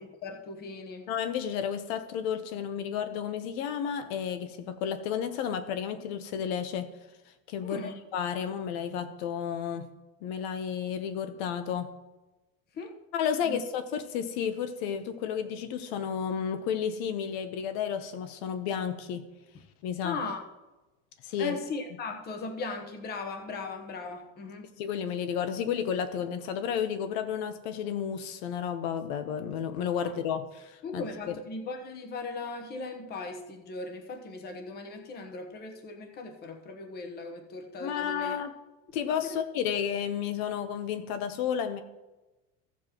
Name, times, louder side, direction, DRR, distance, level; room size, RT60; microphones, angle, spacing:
voice 1, 0.2-1.0 7.6-8.0 12.7-13.0 13.4-13.6 20.0-20.4 21.4-24.7 30.0-30.1 30.8-38.3 39.2-39.4, left 3 dB, 30° left, 5 dB, 1.0 m, -38 dB
voice 2, 1.1-6.9 7.5-9.9 10.2-11.9 13.1-19.2 19.8-20.2 21.2-21.6 24.8-31.4 37.8-38.5 38.9-41.8, left 8 dB, 85° left, 9 dB, 0.9 m, -32 dB
14.5 x 7.4 x 3.0 m, 1.1 s
cardioid pair, 160°, 30 cm